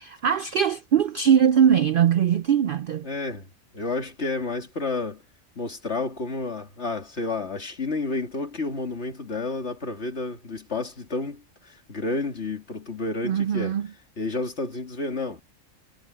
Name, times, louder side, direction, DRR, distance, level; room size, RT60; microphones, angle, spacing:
voice 1, 0.0-3.1 13.2-13.9, right 8 dB, 65° right, 0.5 m, -21 dB
voice 2, 3.0-3.5 3.7-5.2 5.6-13.8 14.2-15.4, left 3 dB, 55° left, 2.9 m, -30 dB
omnidirectional pair, 1.4 m